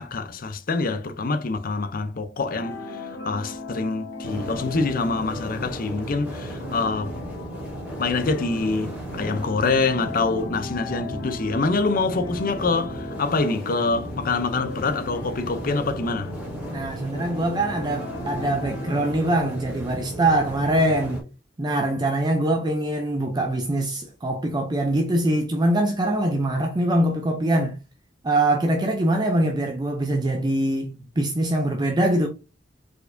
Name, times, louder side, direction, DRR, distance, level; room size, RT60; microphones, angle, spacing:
voice 1, 0.0-7.2 8.0-16.4, left 3 dB, 45° left, 0.6 m, -25 dB
sound 1, 2.5-19.8, left 2 dB, 70° left, 1.5 m, -37 dB
sound 2, 4.2-21.2, right 1 dB, 5° right, 2.5 m, -36 dB
voice 2, 16.7-21.2 21.6-27.8 28.2-32.3, right 1 dB, 20° right, 0.5 m, -23 dB
4.6 x 4.3 x 2.6 m
head